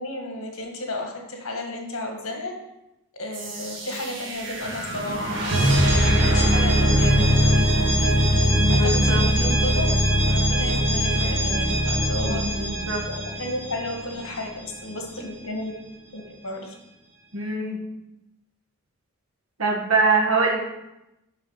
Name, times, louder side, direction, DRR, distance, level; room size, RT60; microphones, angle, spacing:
voice 1, 0.0-2.5 3.2-5.3 5.6-7.6 8.7-10.0 10.2-12.4 13.1-15.7 16.1-16.7, left 1 dB, 70° left, 2 dB, 1.6 m, -33 dB
sound 1, 3.3-14.2, equal, 55° right, 1.8 m, -21 dB
voice 2, 8.6-9.2 12.2-13.0 17.3-17.8 19.6-20.6, right 3 dB, 70° right, 1 dB, 1.5 m, -23 dB
6.6 x 6.0 x 5.6 m, 0.91 s
head